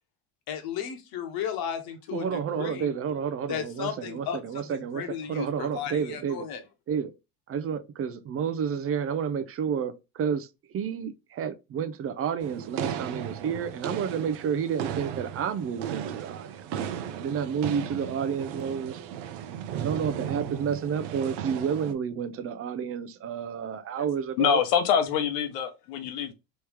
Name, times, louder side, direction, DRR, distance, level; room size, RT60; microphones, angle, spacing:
voice 1, 0.5-2.9 3.5-6.6, left 8 dB, 55° left, 1.2 m, -35 dB
voice 2, 2.1-5.0 5.3-6.4 6.9-7.1 7.5-10.5 10.7-16.6 17.1-19.0 19.8-24.6, right 7 dB, 30° right, 0.5 m, -30 dB
sound 1, 12.4-21.9, right 9 dB, 65° right, 0.8 m, -35 dB
voice 3, 24.4-26.3, left 8 dB, 85° left, 1.0 m, -25 dB
3.2 x 3.1 x 3.3 m
supercardioid pair, 110°, 45 cm